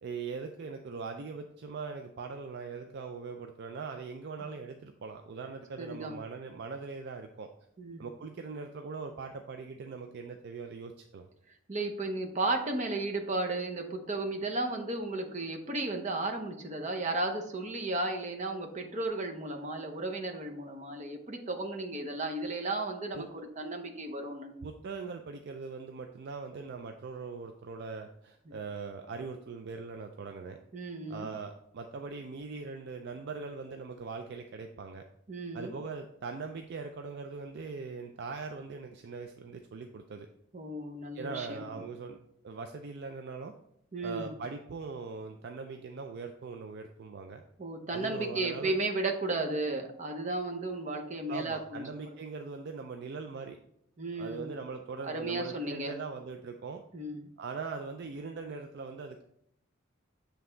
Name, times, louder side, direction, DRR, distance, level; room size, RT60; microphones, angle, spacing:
voice 1, 0.0-7.5 8.0-11.3 23.1-23.3 24.6-30.6 31.1-35.0 35.5-40.3 41.1-42.2 42.4-43.5 44.0-47.4 47.9-48.8 51.3-53.6 54.2-56.8 57.4-59.2, right 4 dB, 50° right, 5 dB, 0.4 m, -41 dB
voice 2, 5.8-6.2 7.8-8.1 11.7-24.5 28.5-28.6 30.7-31.3 35.3-35.7 40.5-41.6 43.9-44.3 47.6-52.1 54.0-54.5 55.1-55.9 56.9-57.3, right 2 dB, 35° right, 3 dB, 0.7 m, -34 dB
7.6 x 3.4 x 3.8 m, 0.72 s
head